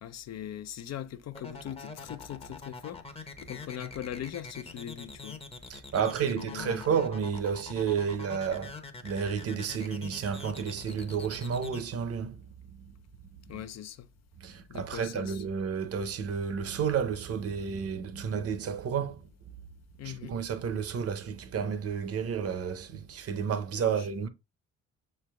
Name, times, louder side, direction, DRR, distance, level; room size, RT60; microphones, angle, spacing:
voice 1, 0.0-3.0 3.4-5.4 5.9-6.9 13.5-14.1 14.7-15.4 20.0-20.4 23.8-24.1, left 11 dB, 60° left, 0.6 m, -40 dB
sound 1, 1.3-11.8, left 4 dB, 20° left, 0.8 m, -44 dB
voice 2, 5.7-12.4 14.4-19.2 20.0-24.3, right 7 dB, 50° right, 0.7 m, -31 dB
6.5 x 3.3 x 2.3 m
cardioid pair, 90°, 30 cm